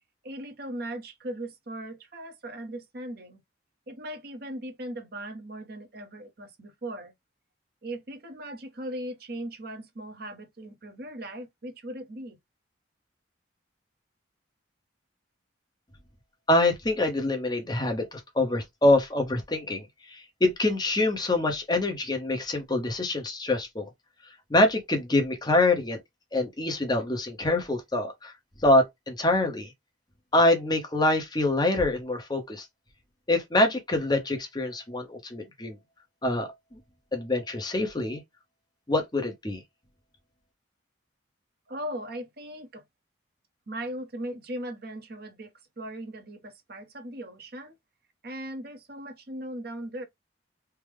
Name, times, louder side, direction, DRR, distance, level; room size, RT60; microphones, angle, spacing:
voice 1, 0.2-3.4 3.9-7.1 7.8-12.4 41.7-42.8 43.7-47.8 48.2-50.1, right 1 dB, 55° right, 0.9 m, -38 dB
voice 2, 16.5-23.9 24.5-26.0 26.3-28.3 28.6-29.7 30.3-32.7 33.3-35.8 36.2-36.8 37.1-38.2 38.9-39.6, left 2 dB, 20° left, 0.8 m, -25 dB
3.4 x 2.1 x 3.3 m
head